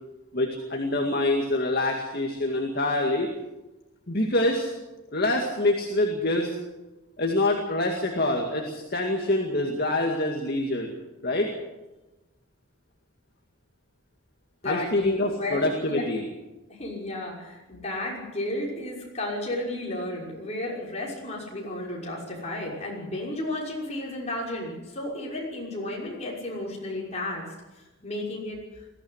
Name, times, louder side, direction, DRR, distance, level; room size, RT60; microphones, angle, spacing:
voice 1, 0.3-3.3 4.1-4.7 5.1-6.6 7.2-10.9 11.2-11.5 14.6-16.2, left 1 dB, 45° left, 1 dB, 2.3 m, -25 dB
voice 2, 14.6-16.0 16.7-28.6, left 1 dB, 30° left, -3 dB, 6.1 m, -33 dB
21.0 x 15.5 x 8.2 m, 1.1 s
head